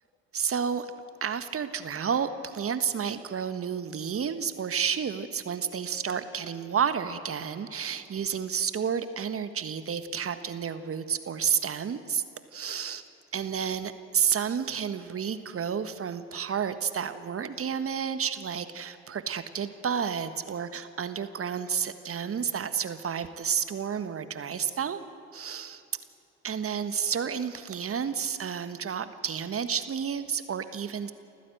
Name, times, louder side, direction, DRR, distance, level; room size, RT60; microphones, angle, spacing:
voice 1, 0.3-0.9 1.2-12.2 12.5-13.0 13.3-25.0 25.3-25.8 26.4-31.1, right 7 dB, 40° right, 11 dB, 1.5 m, -31 dB
28.0 x 15.0 x 7.9 m, 2.8 s
hypercardioid pair, 55°, 36 cm